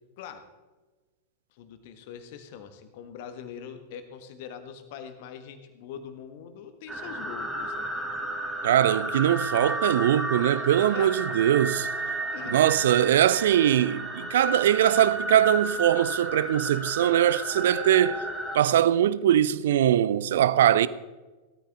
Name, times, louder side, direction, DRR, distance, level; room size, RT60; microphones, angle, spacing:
voice 1, 0.2-0.5 1.5-7.9 10.8-11.4 12.3-13.0, left 8 dB, 50° left, 1.6 m, -43 dB
sound 1, 6.9-18.6, right 1 dB, 10° right, 2.2 m, -33 dB
voice 2, 8.6-11.9 12.5-18.2 18.5-20.9, right 11 dB, 60° right, 0.5 m, -22 dB
17.0 x 13.5 x 3.6 m
figure-of-eight pair, 90°, 0 cm